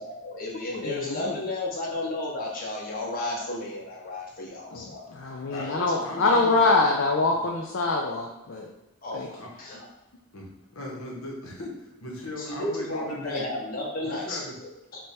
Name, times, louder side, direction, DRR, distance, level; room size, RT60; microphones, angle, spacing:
voice 1, 0.0-5.0 5.5-6.6 9.0-9.8 12.4-14.7, left 1 dB, 40° left, -3 dB, 0.8 m, -33 dB
voice 2, 0.7-1.3 4.7-8.7 9.1-9.3, left 3 dB, 55° left, 0 dB, 0.4 m, -25 dB
voice 3, 4.7-6.6 7.3-7.4 9.4-9.5 10.3-13.5 14.0-14.5, left 2 dB, 75° left, -1 dB, 0.8 m, -39 dB
3.3 x 2.2 x 4.0 m, 0.94 s
head